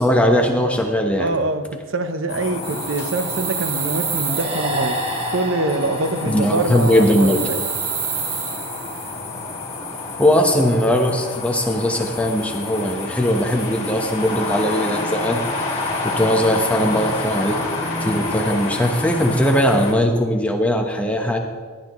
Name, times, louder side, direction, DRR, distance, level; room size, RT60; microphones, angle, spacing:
voice 1, 0.0-1.3 6.2-7.4 10.2-15.4 15.7-17.6 18.0-21.4, equal, 5° left, 2 dB, 1.1 m, -19 dB
voice 2, 1.2-5.0 5.3-7.6, right 2 dB, 60° right, 9 dB, 0.8 m, -24 dB
sound 1, 2.3-19.9, left 2 dB, 30° left, 2.4 m, -29 dB
sound 2, 2.6-5.5 6.5-9.2, right 7 dB, 90° right, 1.4 m, -29 dB
sound 3, 4.3-7.8, right 1 dB, 25° right, 1.4 m, -30 dB
17.5 x 11.5 x 3.1 m, 1.5 s
head